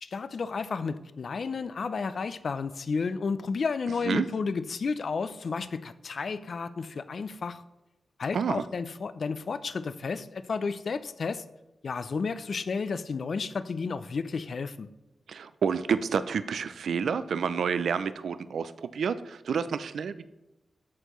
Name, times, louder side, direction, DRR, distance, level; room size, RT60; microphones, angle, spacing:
voice 1, 0.0-7.6 8.2-11.4 11.8-14.9, left 5 dB, 65° left, 13 dB, 0.4 m, -32 dB
voice 2, 15.3-20.3, right 6 dB, 80° right, 13 dB, 0.3 m, -29 dB
13.0 x 4.4 x 3.0 m, 0.97 s
cardioid pair, 65°, 0 cm